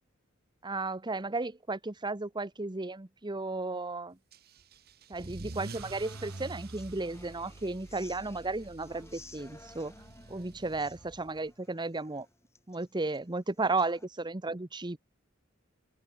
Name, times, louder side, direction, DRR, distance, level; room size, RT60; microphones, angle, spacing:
voice 1, 0.6-4.2 5.1-9.9 10.3-12.2 12.7-15.0, right 3 dB, 20° right, 1.0 m, -34 dB
Car / Engine starting / Accelerating revving vroom, 4.3-11.5, right 2 dB, 50° right, 1.1 m, -47 dB
sound 1, 5.5-8.4 11.2-11.3, right 6 dB, 90° right, 2.9 m, -57 dB
Human voice / Acoustic guitar, 6.1-14.0, left 2 dB, 15° left, 4.8 m, -56 dB
open air
head